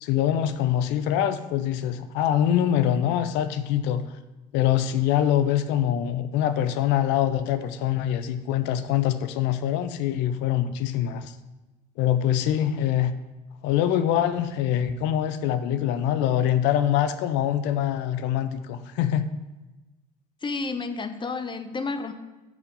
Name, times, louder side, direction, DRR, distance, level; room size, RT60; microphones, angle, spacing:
voice 1, 0.0-4.0 4.5-11.3 12.0-13.1 13.6-19.3, left 10 dB, 70° left, 11 dB, 0.6 m, -24 dB
voice 2, 20.4-22.1, left 4 dB, 25° left, 8 dB, 0.9 m, -30 dB
6.0 x 5.8 x 6.9 m, 1.1 s
hypercardioid pair, 65°, 19 cm